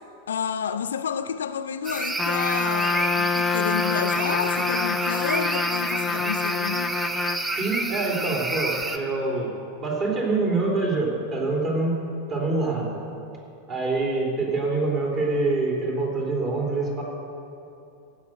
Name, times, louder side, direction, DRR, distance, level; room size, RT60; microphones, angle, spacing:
voice 1, 0.3-6.9, left 7 dB, 65° left, 11 dB, 0.4 m, -30 dB
sound 1, 1.8-9.0, right 2 dB, 10° right, 0.9 m, -29 dB
Trumpet, 2.2-7.5, left 4 dB, 15° left, 0.5 m, -26 dB
voice 2, 7.6-9.5 9.8-12.0 12.3-13.0 13.7-17.0, right 3 dB, 30° right, -2 dB, 3.4 m, -25 dB
16.0 x 6.4 x 7.9 m, 2.7 s
figure-of-eight pair, 90°, 0 cm